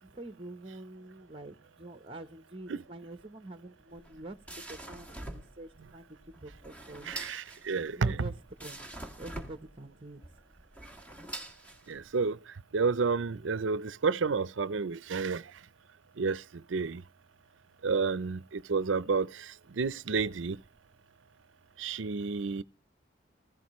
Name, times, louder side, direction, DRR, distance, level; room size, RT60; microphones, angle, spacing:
voice 1, 0.0-4.4 4.7-6.1 6.4-7.1 7.9-8.3 8.6-10.2, right 2 dB, 30° right, 1.0 m, -46 dB
sound 1, 3.9-12.2, right 1 dB, 10° left, 1.9 m, -45 dB
voice 2, 7.0-8.2 11.9-15.5 16.2-17.0 17.8-20.6 21.8-22.6, right 4 dB, 85° right, 0.6 m, -31 dB
16.5 x 15.5 x 3.1 m
head